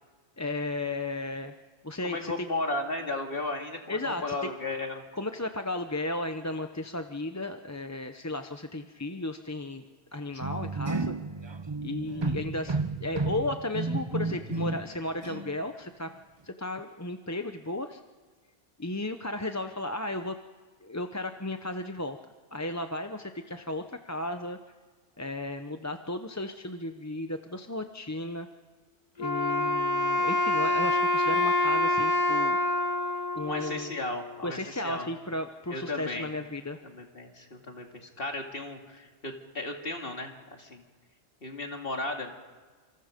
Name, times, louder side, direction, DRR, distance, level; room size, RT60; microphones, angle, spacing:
voice 1, 0.4-1.5 1.8-2.5 3.9-4.5 5.1-9.8 10.1-11.1 11.8-16.1 16.4-18.0 18.8-20.3 20.8-22.2 22.5-24.6 25.2-28.5 29.2-32.6 33.3-33.9 34.4-36.8, left 2 dB, 15° left, 6 dB, 0.7 m, -34 dB
voice 2, 2.0-5.0 33.4-35.1 35.7-36.3 36.8-40.8 41.4-42.4, left 2 dB, 60° left, 3 dB, 2.6 m, -35 dB
sound 1, 10.4-15.0 15.2-15.6, right 3 dB, 30° right, 0.7 m, -32 dB
Wind instrument woodwind instrument, 29.2-34.4, left 1 dB, 40° left, 1.5 m, -26 dB
27.5 x 25.5 x 5.2 m, 1.4 s
omnidirectional pair, 1.1 m